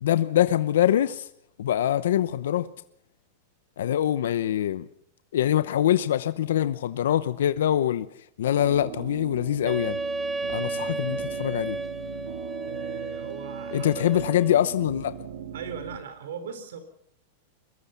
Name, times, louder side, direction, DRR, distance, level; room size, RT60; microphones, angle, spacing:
voice 1, 0.0-1.3 1.6-2.7 3.8-4.8 5.3-8.1 8.4-10.0 10.5-11.8 13.7-15.1, left 11 dB, 85° left, 0.8 m, -24 dB
sound 1, 8.6-16.0, right 9 dB, 65° right, 3.0 m, -39 dB
Wind instrument woodwind instrument, 9.6-14.7, right 2 dB, 10° right, 0.8 m, -33 dB
voice 2, 12.7-14.2 15.5-16.8, right 7 dB, 85° right, 3.9 m, -39 dB
23.0 x 22.0 x 5.8 m
supercardioid pair, 160°, 0 cm